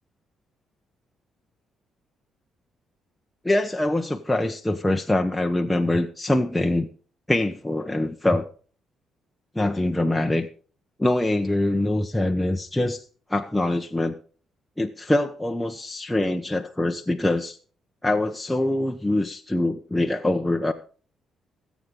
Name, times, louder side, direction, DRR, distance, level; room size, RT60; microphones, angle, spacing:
voice 1, 3.4-6.9 7.3-8.5 9.5-10.5 11.0-13.0 13.3-14.2 14.8-17.6 18.0-20.7, left 1 dB, 10° left, 3 dB, 1.0 m, -24 dB
24.0 x 8.3 x 3.8 m, 0.41 s
cardioid pair, 90°, 0 cm